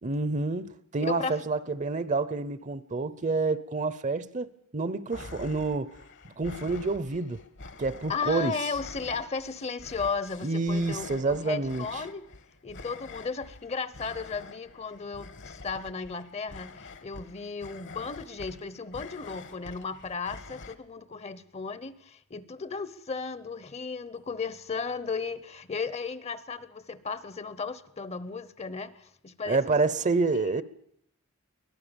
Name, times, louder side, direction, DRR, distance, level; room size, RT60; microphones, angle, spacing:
voice 1, 0.0-5.9 6.4-7.4 7.8-8.6 10.4-12.0 29.5-30.6, right 3 dB, 35° right, 0.8 m, -28 dB
voice 2, 1.0-1.4 8.1-12.2 12.6-29.8, left 5 dB, 30° left, 0.8 m, -35 dB
sound 1, 5.1-20.8, left 3 dB, 60° left, 1.3 m, -46 dB
23.5 x 17.0 x 7.0 m
head